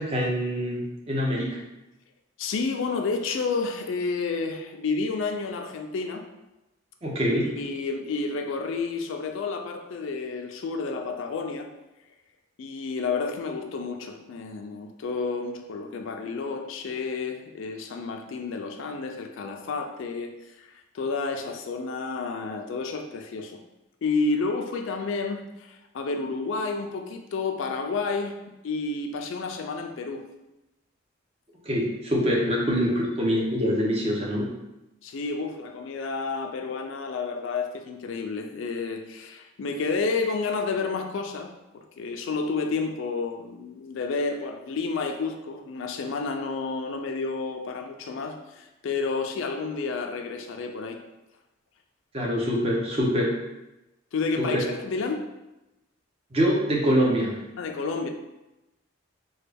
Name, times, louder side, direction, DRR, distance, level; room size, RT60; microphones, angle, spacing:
voice 1, 0.0-1.6 7.0-7.5 31.7-34.5 52.1-53.3 54.4-54.6 56.3-57.4, equal, 30° right, -2 dB, 0.5 m, -24 dB
voice 2, 2.4-6.2 7.6-11.7 12.6-20.3 20.6-23.6 24.0-28.3 28.6-30.2 35.0-51.0 54.1-55.2 57.6-58.1, left 4 dB, 70° left, 4 dB, 0.3 m, -30 dB
3.1 x 2.2 x 3.3 m, 0.97 s
head